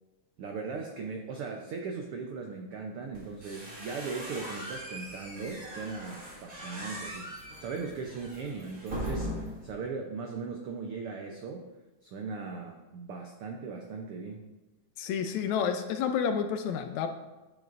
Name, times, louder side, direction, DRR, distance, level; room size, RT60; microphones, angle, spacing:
voice 1, 0.4-11.6 12.0-14.4, right 4 dB, 85° right, 2 dB, 1.2 m, -38 dB
sound 1, 3.1-9.7, equal, 25° right, 2.8 m, -40 dB
voice 2, 15.0-17.1, left 7 dB, 75° left, 7 dB, 1.8 m, -30 dB
11.0 x 9.1 x 2.6 m, 1.1 s
omnidirectional pair, 3.6 m